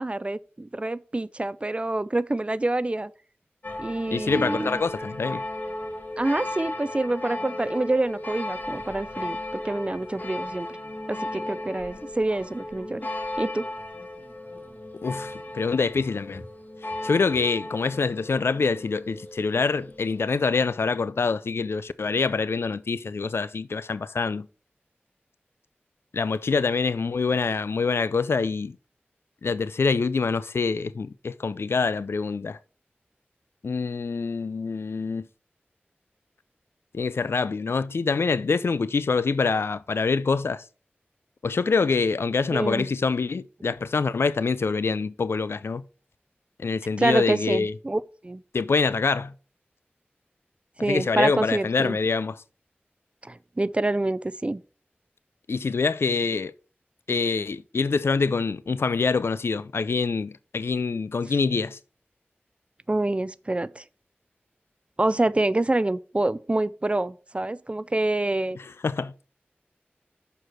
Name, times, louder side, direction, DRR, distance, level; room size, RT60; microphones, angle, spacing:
voice 1, 0.0-3.1 3.8-4.8 6.2-10.7 11.1-13.1 13.4-13.7 42.5-42.9 47.0-48.4 50.8-52.0 53.2-54.6 62.9-63.8 65.0-68.6, right 2 dB, 30° right, 0.4 m, -26 dB
sound 1, 3.6-20.3, left 1 dB, 45° left, 1.4 m, -36 dB
voice 2, 4.1-5.4 15.0-16.4 17.0-24.5 26.1-28.8 29.4-32.6 33.6-35.3 36.9-40.6 41.4-45.8 46.6-47.7 48.5-49.3 50.9-52.4 55.5-56.5 57.1-61.8 68.6-69.3, left 4 dB, 80° left, 0.3 m, -25 dB
6.4 x 4.6 x 4.7 m
wide cardioid pair, 50°, 4 cm